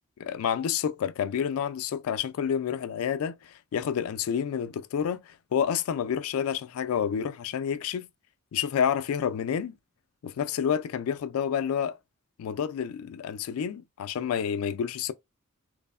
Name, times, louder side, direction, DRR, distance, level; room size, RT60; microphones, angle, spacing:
voice 1, 0.2-8.1 8.5-9.8 10.2-12.0 12.4-15.1, left 8 dB, 75° left, 0.3 m, -29 dB
3.1 x 2.0 x 2.3 m
head